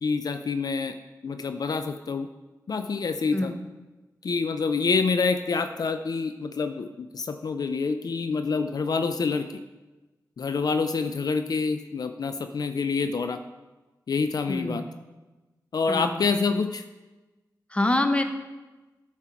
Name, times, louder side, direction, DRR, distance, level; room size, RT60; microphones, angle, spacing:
voice 1, 0.0-1.0 1.2-2.3 2.7-3.5 4.2-9.5 10.4-13.4 14.1-14.8 15.7-16.8, left 4 dB, 65° left, 8 dB, 0.4 m, -27 dB
voice 2, 14.5-14.9 15.9-16.2 17.7-18.2, left 1 dB, 15° left, 7 dB, 0.9 m, -25 dB
10.0 x 4.5 x 5.8 m, 1.2 s
cardioid pair, 60°, 7 cm